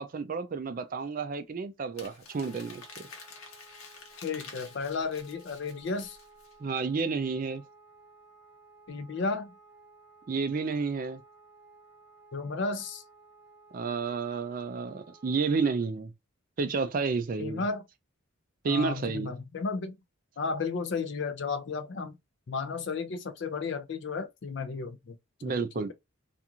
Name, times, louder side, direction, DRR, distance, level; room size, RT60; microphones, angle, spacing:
voice 1, 0.0-2.8 6.6-7.6 10.3-11.2 13.7-16.1 16.6-17.6 18.6-19.3 25.4-25.9, right 4 dB, 40° right, 0.3 m, -31 dB
Crumpling crinkling, 2.0-6.5, left 5 dB, 80° left, 0.9 m, -49 dB
Wind instrument woodwind instrument, 2.3-15.8, right 3 dB, 15° left, 0.8 m, -57 dB
voice 2, 4.2-6.2 8.9-9.5 12.3-13.0 17.4-17.8 18.6-20.0 20.4-22.2 22.5-25.2 25.5-25.9, left 4 dB, 55° left, 0.4 m, -33 dB
2.4 x 2.3 x 2.8 m
head